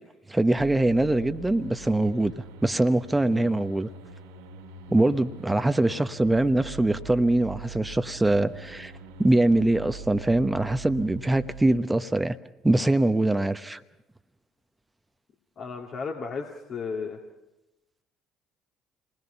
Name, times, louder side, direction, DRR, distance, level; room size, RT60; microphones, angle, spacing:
voice 1, 0.3-2.3 2.6-3.9 4.9-8.9 9.2-12.4 12.6-13.8, right 2 dB, 15° right, 10 dB, 1.0 m, -23 dB
sound 1, 0.6-11.6, right 5 dB, 80° right, 2.6 m, -43 dB
voice 2, 15.6-17.2, left 5 dB, 50° left, 1 dB, 2.2 m, -34 dB
28.5 x 20.5 x 5.8 m, 0.99 s
hypercardioid pair, 50°, 0 cm